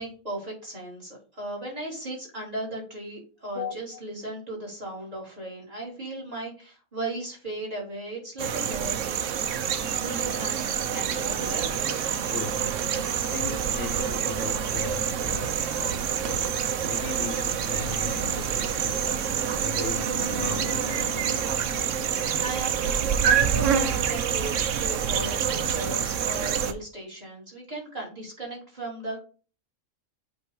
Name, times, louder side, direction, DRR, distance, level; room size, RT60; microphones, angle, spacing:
voice 1, 0.0-9.3 9.9-12.0 22.4-29.2, right 2 dB, 30° right, 3.5 m, -36 dB
sound 1, 8.4-26.7, right 8 dB, 80° right, 1.1 m, -27 dB
voice 2, 12.3-12.7 13.3-16.6 16.9-19.1 19.6-21.6, left 7 dB, 70° left, 1.1 m, -38 dB
sound 2, 15.2-26.6, right 1 dB, 10° right, 1.7 m, -43 dB
sound 3, 19.6-22.8, left 1 dB, 20° left, 0.9 m, -40 dB
8.3 x 3.1 x 4.7 m
omnidirectional pair, 1.3 m